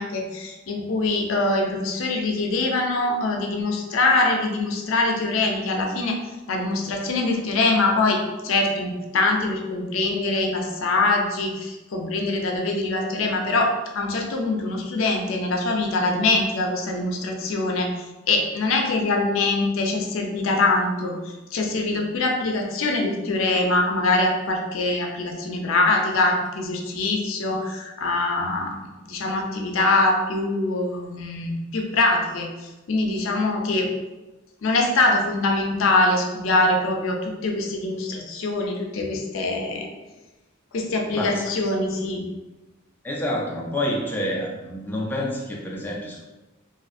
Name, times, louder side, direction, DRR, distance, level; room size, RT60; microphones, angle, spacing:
voice 1, 0.0-6.2 6.5-17.9 18.3-28.7 29.1-33.9 34.6-39.9 40.7-42.3, left 2 dB, 75° left, 2 dB, 0.5 m, -23 dB
voice 2, 41.1-41.4 43.0-46.2, left 1 dB, 10° left, -3 dB, 0.3 m, -28 dB
2.6 x 2.4 x 2.5 m, 1.1 s
head